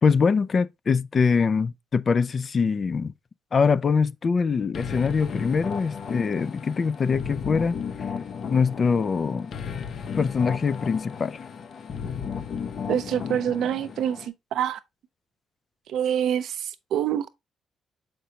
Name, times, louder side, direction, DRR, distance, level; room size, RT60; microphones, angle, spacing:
voice 1, 0.0-3.1 3.5-7.8 8.5-9.5 10.2-11.4, left 5 dB, 40° left, 0.4 m, -23 dB
sound 1, 4.7-14.3, left 6 dB, 60° left, 0.7 m, -34 dB
voice 2, 12.9-14.8 15.9-17.3, right 9 dB, 75° right, 0.6 m, -26 dB
6.8 x 5.2 x 2.8 m
cardioid pair, 90°, 0 cm